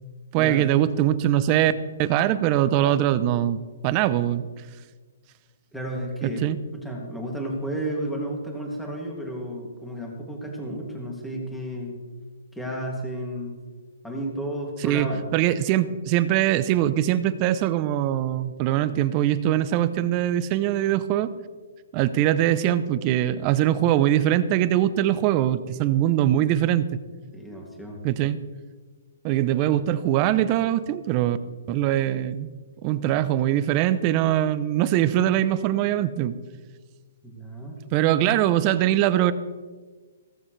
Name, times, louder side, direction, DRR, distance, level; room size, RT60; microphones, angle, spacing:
voice 1, 0.3-1.7 2.0-4.4 6.2-6.6 14.8-15.1 15.3-21.3 21.9-26.9 28.0-28.4 29.2-31.4 31.7-32.5 32.8-36.4 37.9-39.3, right 12 dB, 30° right, 14 dB, 0.7 m, -22 dB
voice 2, 5.7-6.4 6.7-12.0 12.5-13.5 14.0-15.3 27.3-28.0 37.2-37.8, right 1 dB, 5° left, -2 dB, 2.6 m, -32 dB
15.5 x 14.5 x 3.4 m, 1.4 s
hypercardioid pair, 155°, 0 cm